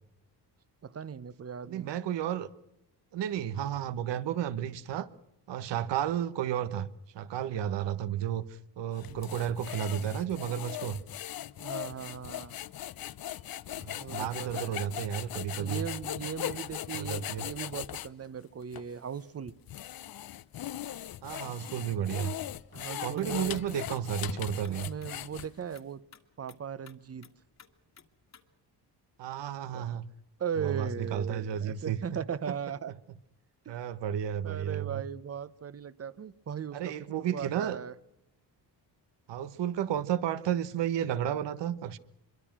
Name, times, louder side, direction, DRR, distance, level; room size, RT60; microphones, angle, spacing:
voice 1, 0.8-1.9 9.0-9.2 11.6-12.6 14.0-14.8 15.6-19.5 22.7-23.6 24.7-26.0 26.4-27.3 29.7-30.0 30.4-32.9 33.6-33.8 34.4-37.9, right 8 dB, 35° right, 1.0 m, -38 dB
voice 2, 1.6-2.5 3.1-5.1 5.5-6.9 7.1-11.0 13.8-15.8 16.9-17.4 21.2-22.4 23.0-24.9 29.2-30.0 30.6-32.0 33.7-35.0 36.7-37.8 39.3-42.0, right 10 dB, 80° right, 1.4 m, -32 dB
sound 1, 9.0-18.1 18.7-18.8 19.5-25.7, left 12 dB, 55° left, 0.8 m, -39 dB
sound 2, 23.1-28.4, left 7 dB, 40° left, 2.0 m, -58 dB
25.5 x 23.0 x 6.1 m
cardioid pair, 120°, 42 cm